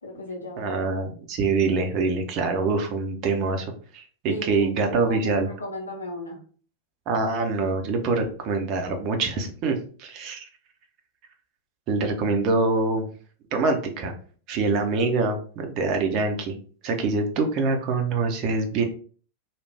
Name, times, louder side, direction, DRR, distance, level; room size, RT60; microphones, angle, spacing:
voice 1, 0.0-0.7 4.3-6.4, left 1 dB, 75° left, -1 dB, 0.8 m, -36 dB
voice 2, 0.6-5.5 7.1-10.5 11.9-13.1 13.5-14.1 14.5-16.5 16.8-18.8, right 3 dB, 40° right, 4 dB, 0.7 m, -25 dB
3.3 x 2.4 x 3.3 m, 0.42 s
figure-of-eight pair, 90°, 0 cm